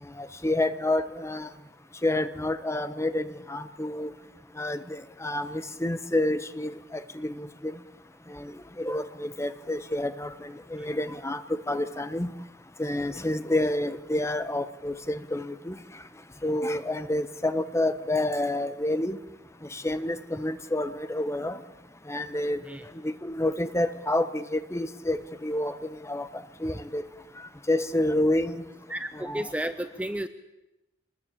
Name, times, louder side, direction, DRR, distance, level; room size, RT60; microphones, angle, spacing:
voice 1, 0.0-1.5 2.0-4.1 4.5-7.8 8.3-12.3 12.8-16.0 16.4-19.2 19.6-21.6 22.0-22.6 22.9-27.0 27.4-28.6 29.1-29.5, left 1 dB, 15° left, 11 dB, 1.2 m, -29 dB
voice 2, 28.9-30.3, right 1 dB, 10° right, 9 dB, 0.8 m, -32 dB
25.5 x 20.5 x 8.7 m, 0.95 s
head